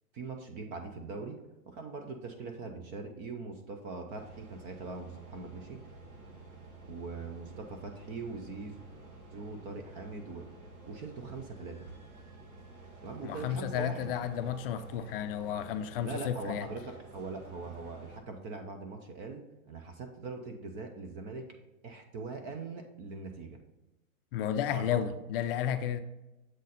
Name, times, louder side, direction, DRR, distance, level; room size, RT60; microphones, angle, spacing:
voice 1, 0.1-5.9 6.9-8.8 9.3-10.5 10.9-11.9 13.0-14.2 16.0-21.5 21.8-23.6 24.7-25.1, right 3 dB, 25° right, 5 dB, 0.4 m, -42 dB
sound 1, 4.1-18.2, right 2 dB, 85° right, 1.8 m, -51 dB
voice 2, 13.2-16.7 24.3-26.0, left 9 dB, 45° left, 9 dB, 0.5 m, -32 dB
7.6 x 4.0 x 4.0 m, 0.98 s
hypercardioid pair, 130°, 42 cm